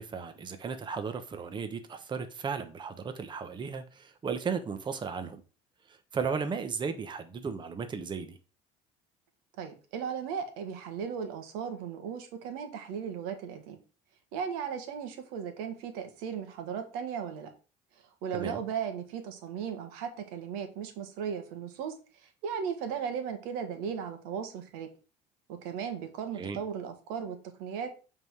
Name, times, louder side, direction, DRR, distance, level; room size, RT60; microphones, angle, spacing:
voice 1, 0.0-5.4 5.9-8.4 18.3-18.6 26.3-26.6, right 5 dB, 30° right, 1.1 m, -35 dB
voice 2, 9.6-13.8 14.3-17.5 18.2-21.9 22.2-24.9 25.5-27.9, right 7 dB, 85° right, 1.5 m, -36 dB
8.0 x 3.8 x 4.7 m
supercardioid pair, 100°, 15 cm